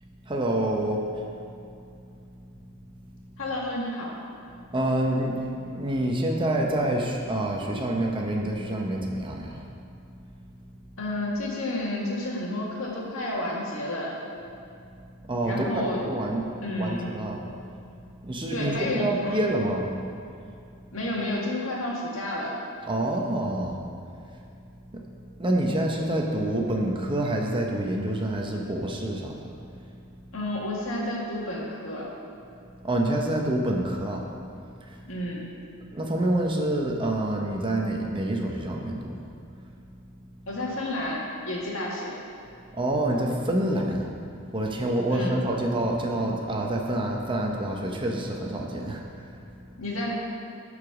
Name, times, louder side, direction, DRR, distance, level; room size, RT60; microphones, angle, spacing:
voice 1, 0.3-1.2 4.7-9.6 15.3-16.5 16.8-17.4 18.2-19.9 22.9-23.8 24.9-25.0 25.4-29.5 32.8-34.2 34.9-35.0 35.9-39.1 42.7-44.1 44.5-49.3, right 1 dB, 25° right, 0 dB, 0.8 m, -27 dB
voice 2, 3.4-4.1 11.0-14.1 15.4-16.0 16.6-17.2 18.5-19.4 20.9-22.6 30.3-32.1 35.0-35.4 40.5-42.2 45.1-45.4 49.8-50.1, left 1 dB, 70° left, -4 dB, 2.0 m, -30 dB
12.0 x 4.9 x 6.2 m, 2.5 s
head